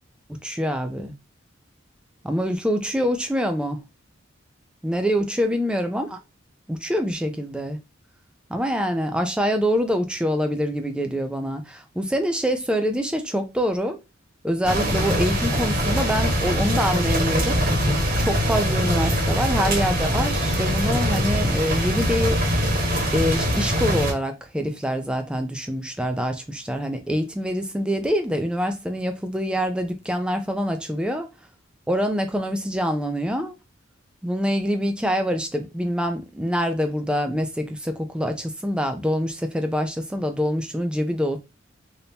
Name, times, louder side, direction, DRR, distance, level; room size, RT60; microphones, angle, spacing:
voice 1, 0.4-1.1 2.2-3.8 4.8-6.2 6.7-7.8 8.5-14.0 14.4-17.6 18.2-22.4 23.1-31.3 31.9-33.5 34.2-41.4, equal, 5° right, 0.4 m, -25 dB
sound 1, 14.6-24.1, equal, 45° right, 1.2 m, -22 dB
3.4 x 2.7 x 2.8 m
head